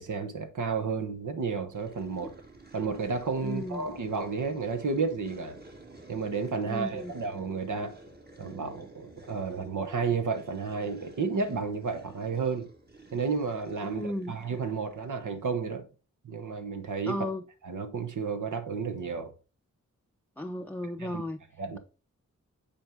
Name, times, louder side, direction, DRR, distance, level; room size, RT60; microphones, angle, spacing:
voice 1, 0.0-2.3 2.7-5.6 6.1-8.0 8.4-12.7 13.1-15.9 16.2-17.2 17.6-19.3 21.0-21.2 21.6-21.8, right 5 dB, 80° right, 1.2 m, -32 dB
sound 1, 1.7-15.6, right 2 dB, 30° right, 1.7 m, -51 dB
voice 2, 3.4-3.9 6.6-7.1 13.9-14.3 17.1-17.4 20.4-21.4, left 1 dB, 5° left, 0.5 m, -34 dB
8.7 x 4.3 x 3.6 m
wide cardioid pair, 70°, 30 cm